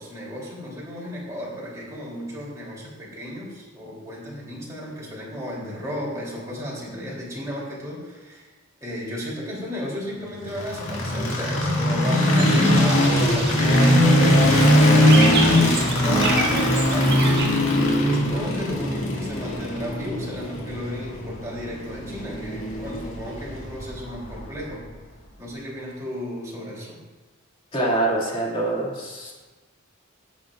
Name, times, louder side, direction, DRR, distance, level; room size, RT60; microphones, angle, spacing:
voice 1, 0.0-8.5 8.8-15.2 15.6-17.7 18.1-24.8 25.4-27.0, equal, 15° right, -6 dB, 3.2 m, -34 dB
sound 1, 10.5-24.6, left 1 dB, 70° left, 2.0 m, -20 dB
sound 2, 12.4-17.5, right 4 dB, 55° right, 1.4 m, -29 dB
voice 2, 27.7-29.3, right 2 dB, 25° left, -4 dB, 2.3 m, -25 dB
16.5 x 7.1 x 2.5 m, 1.3 s
head